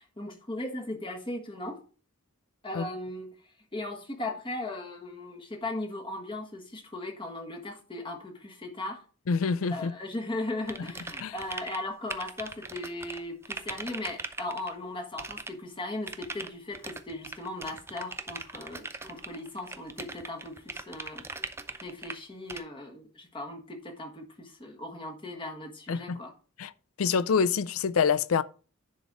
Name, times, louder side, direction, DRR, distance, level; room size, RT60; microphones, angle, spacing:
voice 1, 0.0-1.8 2.6-3.3 3.7-9.0 9.7-21.2 21.8-26.3, left 2 dB, 25° left, 1.5 m, -38 dB
voice 2, 9.3-9.9 11.2-11.3 25.9-26.2 26.6-26.7 27.0-28.4, left 6 dB, 85° left, 0.5 m, -26 dB
sound 1, 10.7-11.8 12.1-14.7 15.2-15.5 16.1-22.2 22.5-22.6, right 3 dB, 10° right, 0.5 m, -40 dB
10.5 x 4.1 x 4.9 m
head